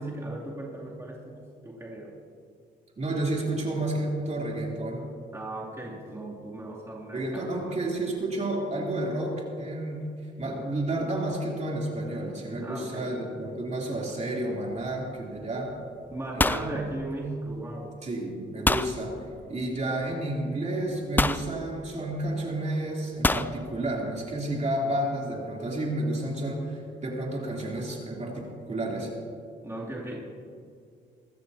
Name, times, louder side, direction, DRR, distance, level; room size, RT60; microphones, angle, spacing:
voice 1, 0.0-2.2 5.3-7.8 12.6-13.2 16.1-17.9 29.6-30.2, right 2 dB, 15° right, -6 dB, 2.8 m, -37 dB
voice 2, 3.0-5.1 7.1-10.1 10.4-15.7 16.3-16.8 18.0-19.1 19.5-29.1, right 1 dB, 35° right, -3 dB, 3.3 m, -31 dB
sound 1, 14.7-15.1 15.4-15.8 16.0-17.6 18.7-19.0 20.1-20.2 21.2-21.5 23.2-23.5, left 2 dB, 10° left, 0.4 m, -26 dB
23.5 x 12.5 x 2.8 m, 2.3 s
cardioid pair, 90°, 20 cm